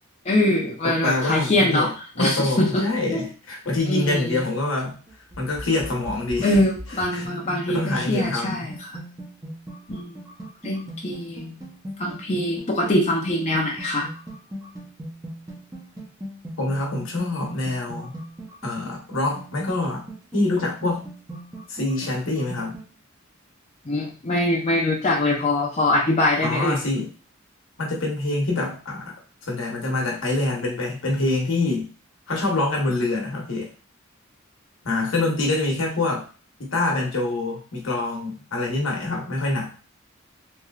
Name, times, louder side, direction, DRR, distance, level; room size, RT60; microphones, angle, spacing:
voice 1, 0.2-1.9 2.2-2.8 3.1-3.3 3.9-4.4 6.4-9.0 9.9-10.2 10.6-11.5 12.0-14.1 23.9-26.8, left 1 dB, 30° left, -3 dB, 0.6 m, -23 dB
voice 2, 0.8-5.0 5.4-6.5 7.1-7.2 7.7-8.7 16.6-18.1 18.6-20.1 20.3-21.0 21.7-22.7 26.4-27.1 27.8-29.1 29.5-31.9 32.3-33.7 34.8-36.2 36.6-39.7, left 2 dB, 70° left, -1 dB, 1.0 m, -25 dB
sound 1, 5.1-22.9, right 1 dB, 15° right, 0.7 m, -39 dB
3.2 x 2.7 x 2.3 m, 0.36 s
head